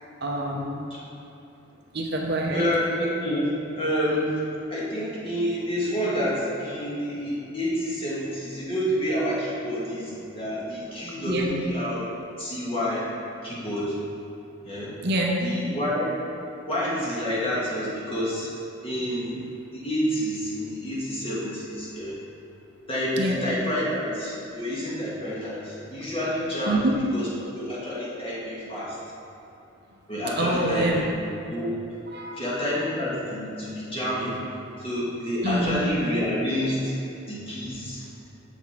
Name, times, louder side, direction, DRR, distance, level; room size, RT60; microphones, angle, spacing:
voice 1, 0.2-0.8 1.9-2.6 11.3-11.5 15.0-15.4 23.2-23.4 26.7-26.9 30.4-31.0 32.1-32.3 35.4-35.7, right 1 dB, 55° right, -1 dB, 0.8 m, -25 dB
voice 2, 2.5-4.4 4.7-12.0 12.4-13.0 13.4-13.9 14.6-14.9 15.4-16.2 16.7-18.5 18.8-19.4 19.7-22.2 22.9-29.0 30.1-31.7 32.3-34.4 34.8-37.0 37.3-38.0, equal, 25° left, -7 dB, 1.7 m, -28 dB
7.1 x 5.8 x 4.5 m, 2.9 s
head